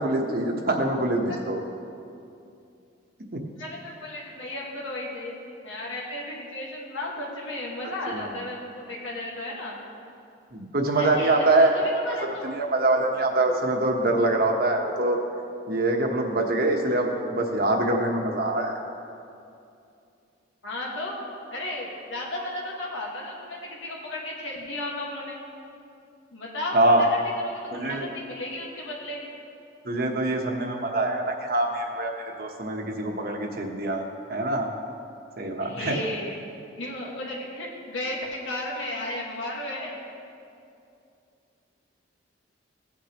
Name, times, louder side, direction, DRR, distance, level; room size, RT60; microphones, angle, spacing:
voice 1, 0.0-1.6 8.1-8.3 10.5-12.2 12.4-15.2 15.7-18.7 26.7-27.0 27.7-28.1 29.8-32.1 32.4-34.0 34.3-34.7 35.4-36.0, right 2 dB, 50° right, 2 dB, 1.1 m, -24 dB
voice 2, 3.6-5.3 5.6-9.8 10.9-12.5 20.6-21.2 21.5-25.4 26.3-27.1 27.3-29.2 35.6-36.4 36.8-39.9, left 1 dB, 90° left, -3 dB, 1.7 m, -34 dB
16.5 x 8.3 x 3.0 m, 2.6 s
head